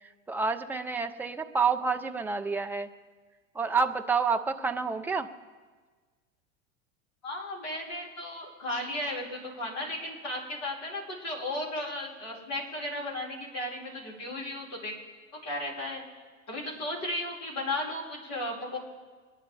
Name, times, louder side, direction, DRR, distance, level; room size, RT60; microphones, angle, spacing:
voice 1, 0.3-2.9 3.5-5.3, right 5 dB, 5° right, 6 dB, 0.6 m, -28 dB
voice 2, 7.2-14.9 15.4-16.0 16.5-18.8, left 1 dB, 40° left, -3 dB, 5.1 m, -35 dB
22.5 x 10.5 x 3.4 m, 1.4 s
figure-of-eight pair, 85°, 40 cm